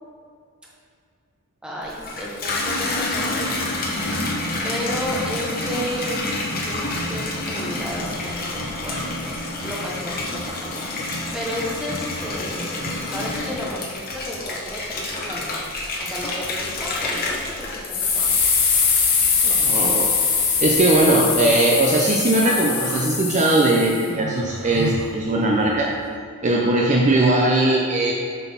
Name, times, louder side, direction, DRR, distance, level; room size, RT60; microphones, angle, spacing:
voice 1, 1.6-3.8 4.6-6.8 7.1-15.6 16.0-18.4, equal, 5° right, -5 dB, 1.3 m, -33 dB
Water tap faucet / Bathtub (filling or washing), 1.8-18.8 19.2-19.8, left 2 dB, 45° left, 1.1 m, -28 dB
sound 1, 17.9-24.1, left 5 dB, 80° left, 1.3 m, -21 dB
voice 2, 19.4-20.2 20.6-25.9 26.4-28.1, right 2 dB, 35° right, -2 dB, 0.6 m, -19 dB
Human voice, 22.4-23.1 24.0-26.0, right 3 dB, 75° right, 0.6 m, -33 dB
7.0 x 4.2 x 5.7 m, 2.4 s
head